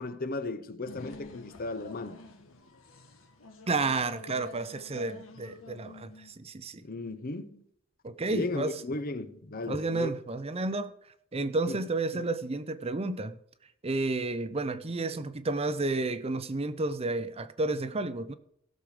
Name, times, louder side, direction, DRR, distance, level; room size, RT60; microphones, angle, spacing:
voice 1, 0.0-2.3 6.8-7.6 8.3-10.1 11.7-11.8 12.1-12.2, left 2 dB, 45° left, 0.9 m, -35 dB
sound 1, 0.9-6.3, left 3 dB, 90° left, 1.8 m, -49 dB
voice 2, 3.7-6.8 8.0-8.8 9.7-10.9 11.3-13.4 13.8-18.3, right 3 dB, 30° right, 0.7 m, -31 dB
16.5 x 6.6 x 5.0 m
head